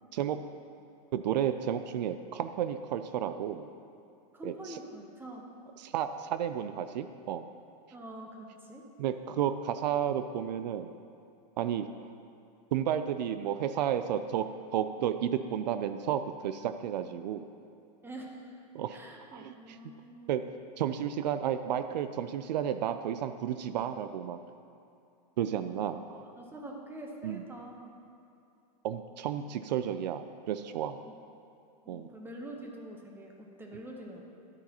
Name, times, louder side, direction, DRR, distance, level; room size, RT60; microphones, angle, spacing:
voice 1, 1.1-3.7 4.4-4.8 5.8-7.5 9.0-10.9 11.6-12.1 12.7-17.5 18.7-19.0 19.3-19.8 20.3-20.4 20.8-24.4 25.4-26.3 27.2-27.4 28.8-31.0 31.9-32.1, right 9 dB, 80° right, 10 dB, 0.4 m, -32 dB
voice 2, 4.3-5.5 7.9-8.9 18.0-18.5 18.9-20.4 26.4-27.9 31.0-31.1 31.8-34.2, right 1 dB, 10° right, 0 dB, 0.9 m, -45 dB
10.5 x 9.5 x 2.9 m, 2.6 s
supercardioid pair, 130°, 21 cm